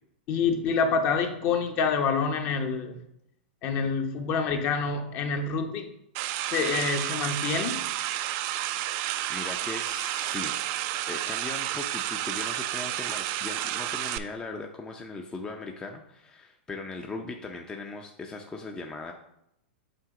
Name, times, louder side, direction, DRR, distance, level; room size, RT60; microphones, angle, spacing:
voice 1, 0.3-3.0 3.6-5.9 6.4-7.8, left 5 dB, 40° left, 5 dB, 0.9 m, -27 dB
sound 1, 6.1-14.2, right 13 dB, 45° right, 0.4 m, -31 dB
voice 2, 8.8-10.5 11.1-19.1, left 3 dB, 15° left, 3 dB, 0.5 m, -39 dB
7.6 x 2.8 x 4.8 m, 0.77 s
hypercardioid pair, 115°, 6 cm